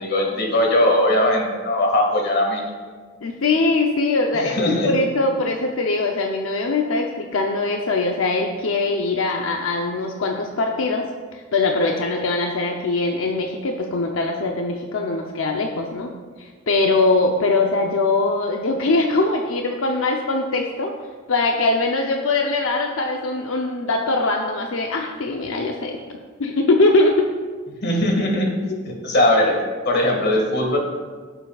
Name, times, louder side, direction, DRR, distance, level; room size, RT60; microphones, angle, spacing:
voice 1, 0.0-2.6 4.5-4.9 27.8-28.5 28.9-29.6 29.9-30.8, left 1 dB, 55° left, 1 dB, 1.7 m, -19 dB
voice 2, 3.2-16.1 16.4-20.9 21.3-26.0 26.4-27.3, left 3 dB, 90° left, 1 dB, 0.7 m, -22 dB
15.5 x 6.9 x 2.4 m, 1.5 s
head